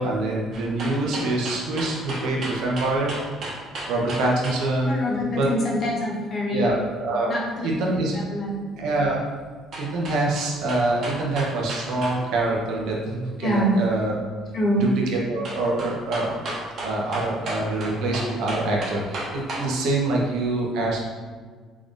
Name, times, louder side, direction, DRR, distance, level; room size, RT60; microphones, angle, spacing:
voice 1, 0.0-3.1 3.9-5.0 5.4-5.5 6.5-7.3 7.6-8.2 8.8-9.2 9.8-14.2 14.7-16.4 16.8-21.0, right 2 dB, 75° right, -2 dB, 0.8 m, -25 dB
sound 1, 0.5-4.6 9.7-12.2 12.5-12.6 15.4-19.7 20.1-20.2, right 2 dB, 40° right, 0.9 m, -33 dB
voice 2, 4.9-6.7 7.3-7.7 8.1-8.6 13.4-13.8 14.5-14.8, equal, 35° left, -3 dB, 0.8 m, -25 dB
3.7 x 2.5 x 3.7 m, 1.5 s
cardioid pair, 160°, 0 cm